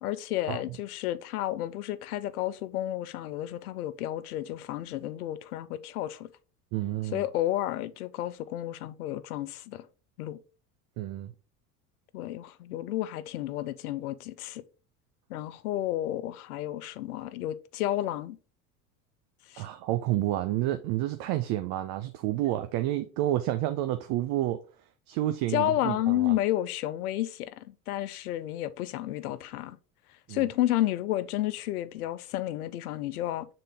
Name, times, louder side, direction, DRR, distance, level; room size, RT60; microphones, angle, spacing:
voice 1, 0.0-6.3 7.1-9.9 10.2-10.4 12.1-14.6 15.3-18.4 19.5-19.7 25.5-29.8 30.3-33.5, left 14 dB, 80° left, 0.6 m, -31 dB
voice 2, 6.7-7.2 11.0-11.3 19.6-24.6 25.1-26.3 30.3-30.5, right 14 dB, 55° right, 0.7 m, -29 dB
6.7 x 3.8 x 3.6 m
hypercardioid pair, 75°, 44 cm